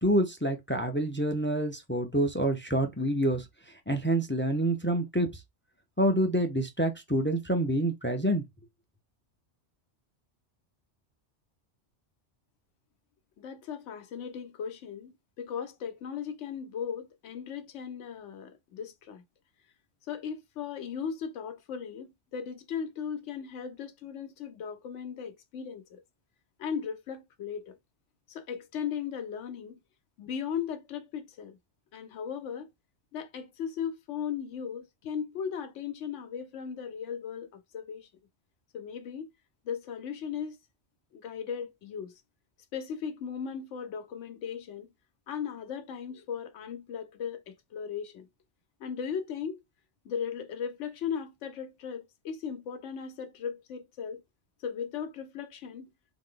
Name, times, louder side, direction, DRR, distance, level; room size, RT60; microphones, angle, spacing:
voice 1, 0.0-5.4 6.0-8.4, right 1 dB, 15° left, 0.4 m, -27 dB
voice 2, 13.4-19.2 20.1-26.0 26.6-27.8 28.3-29.8 30.2-31.6 31.9-32.7 33.1-38.1 38.7-39.3 39.7-40.6 41.1-42.1 42.7-44.9 45.3-48.3 48.8-49.6 50.1-54.2 54.6-55.9, left 7 dB, 90° left, 1.0 m, -37 dB
3.8 x 2.9 x 3.7 m
omnidirectional pair, 1.2 m